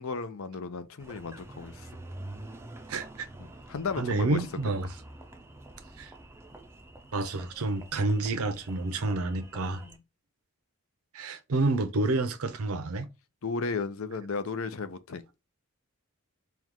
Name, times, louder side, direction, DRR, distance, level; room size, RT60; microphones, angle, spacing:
voice 1, 0.0-1.9 3.4-4.4 13.4-15.2, left 4 dB, 70° left, 0.6 m, -34 dB
Engine, 1.0-10.0, right 1 dB, 10° right, 0.4 m, -47 dB
voice 2, 2.9-3.3 4.0-4.9 6.0-6.1 7.1-9.8 11.1-13.1, right 2 dB, 75° right, 0.6 m, -29 dB
4.6 x 2.3 x 3.6 m
head